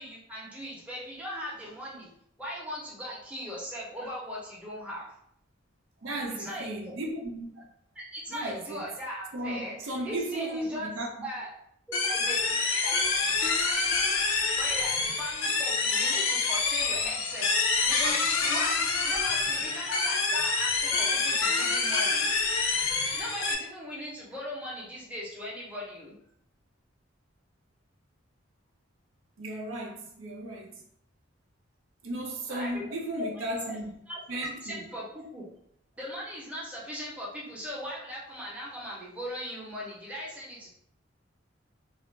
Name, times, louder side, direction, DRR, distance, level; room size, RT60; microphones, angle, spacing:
voice 1, 0.0-2.1 2.4-5.1 6.4-6.8 7.9-10.9 11.2-11.5 12.0-13.0 13.3-13.4 14.6-22.3 23.0-26.2 32.5-32.8 33.3-33.8 34.1-34.2 34.6-35.1 35.3-35.4 36.0-40.7, equal, 5° right, 0.6 m, -39 dB
voice 2, 6.0-7.6 8.3-8.9 9.3-11.1 13.7-13.9 14.2-14.4 29.4-30.8 32.0-33.9 34.3-34.9, right 1 dB, 85° right, 0.6 m, -35 dB
sound 1, 11.9-23.5, left 4 dB, 90° left, 0.4 m, -27 dB
2.4 x 2.0 x 3.1 m
head